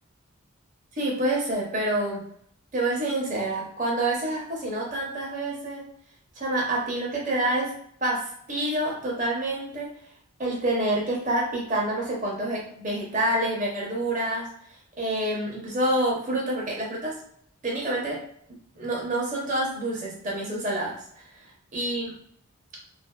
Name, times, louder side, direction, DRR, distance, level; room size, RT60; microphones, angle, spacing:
voice 1, 1.0-2.2 2.7-5.9 6.4-7.7 8.0-9.9 10.4-14.5 15.0-17.2 17.6-18.2 18.8-21.2 21.7-22.1, right 1 dB, 35° right, -4 dB, 0.7 m, -27 dB
2.6 x 2.5 x 2.3 m, 0.63 s
head